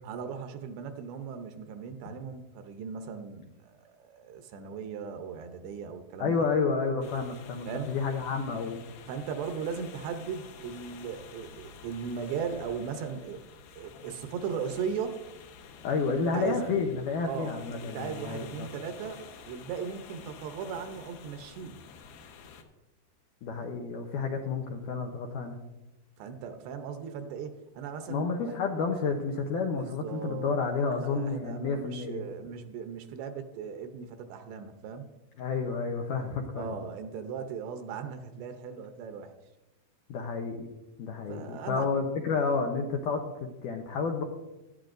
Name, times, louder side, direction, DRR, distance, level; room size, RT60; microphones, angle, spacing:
voice 1, 0.0-6.5 7.7-7.9 9.1-13.4 13.7-15.2 16.1-16.7 17.2-17.5 17.8-19.2 19.5-21.8 26.2-28.3 29.7-30.6 30.9-35.1 36.5-39.3 41.3-41.9, right 6 dB, 80° right, 7 dB, 2.9 m, -38 dB
voice 2, 6.2-8.8 15.8-18.7 23.4-25.6 28.1-32.3 35.4-36.7 40.1-40.7 41.0-44.2, left 4 dB, 90° left, 3 dB, 1.8 m, -30 dB
sound 1, 7.0-22.6, left 6 dB, 70° left, 2.6 m, -50 dB
17.5 x 12.0 x 2.6 m, 1.0 s
omnidirectional pair, 5.0 m